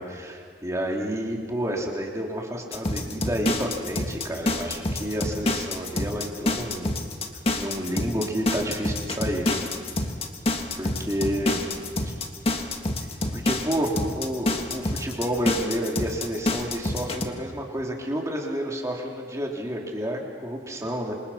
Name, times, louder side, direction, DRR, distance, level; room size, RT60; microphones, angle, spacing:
voice 1, 0.0-7.1 7.6-9.6 10.8-11.6 12.0-12.1 13.3-21.1, equal, 15° right, -1 dB, 3.3 m, -30 dB
sound 1, 2.7-17.3, left 2 dB, 35° left, 1.8 m, -27 dB
27.5 x 27.0 x 5.8 m, 2.1 s
head